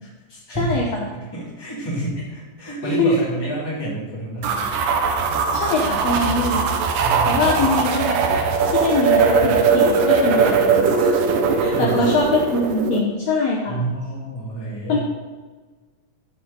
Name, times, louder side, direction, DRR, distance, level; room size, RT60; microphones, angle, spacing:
voice 1, 0.0-0.8 1.1-4.8 7.0-7.7 11.7-12.2 13.7-15.0, right 2 dB, 10° left, -6 dB, 2.1 m, -29 dB
voice 2, 0.6-1.1 2.8-3.2 5.5-6.6 7.3-8.2 8.7-11.1 11.6-13.8 14.9-15.0, left 3 dB, 65° left, -1 dB, 1.8 m, -22 dB
sound 1, 4.4-13.0, right 5 dB, 90° right, 2.5 m, -20 dB
14.0 x 4.9 x 4.0 m, 1.4 s
omnidirectional pair, 3.8 m